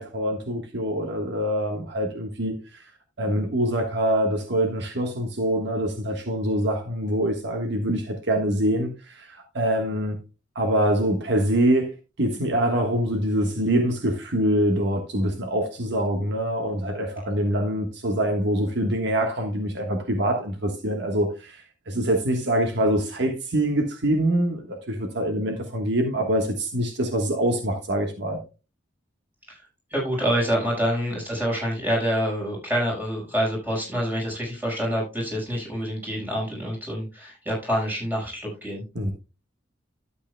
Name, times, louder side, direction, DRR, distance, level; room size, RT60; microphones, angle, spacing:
voice 1, 0.0-2.9 3.2-10.2 10.5-28.4 38.9-39.1, right 1 dB, 65° right, 1.4 m, -25 dB
voice 2, 29.9-38.8, equal, 10° right, 5.2 m, -27 dB
12.5 x 8.4 x 2.2 m
head